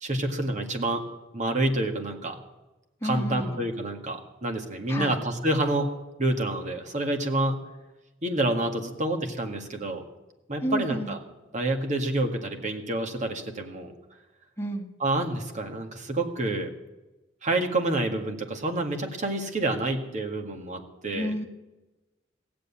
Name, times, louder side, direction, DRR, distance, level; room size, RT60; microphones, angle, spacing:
voice 1, 0.0-1.0 1.3-2.4 3.0-5.9 6.2-7.6 8.2-10.0 10.5-11.2 11.5-13.9 15.0-16.7 17.4-21.3, right 2 dB, 40° right, 3 dB, 1.9 m, -28 dB
voice 2, 3.0-3.6 4.9-5.1 10.6-11.1 14.6-14.9 21.1-21.5, equal, 15° left, 1 dB, 1.6 m, -30 dB
16.5 x 7.8 x 8.8 m, 1.1 s
head